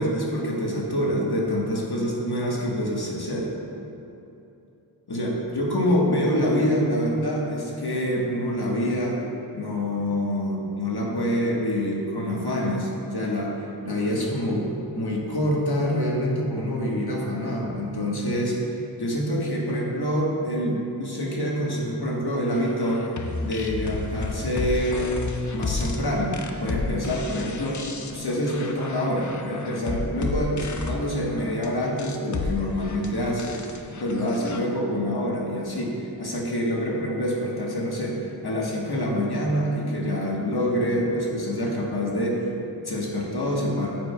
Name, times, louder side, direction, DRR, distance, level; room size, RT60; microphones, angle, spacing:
voice 1, 0.0-3.5 5.1-9.2 9.5-13.5 13.8-18.6 19.0-23.1 23.4-27.8 28.1-33.6 33.9-43.9, equal, 60° left, -3 dB, 1.3 m, -26 dB
sound 1, 22.7-34.6, left 3 dB, 40° left, 0.6 m, -32 dB
9.2 x 7.6 x 2.2 m, 2.9 s
wide cardioid pair, 65°, 44 cm